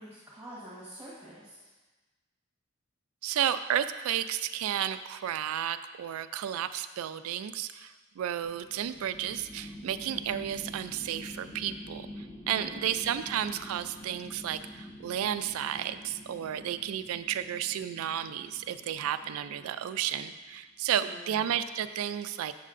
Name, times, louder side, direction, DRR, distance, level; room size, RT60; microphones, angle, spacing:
voice 1, 0.0-1.7 12.4-12.9 20.9-21.4, right 1 dB, 10° right, -9 dB, 1.2 m, -47 dB
voice 2, 3.2-22.5, right 10 dB, 85° right, 12 dB, 0.3 m, -32 dB
sound 1, 8.4-20.5, left 1 dB, 25° left, 0.6 m, -47 dB
7.5 x 6.4 x 2.5 m, 1.2 s
head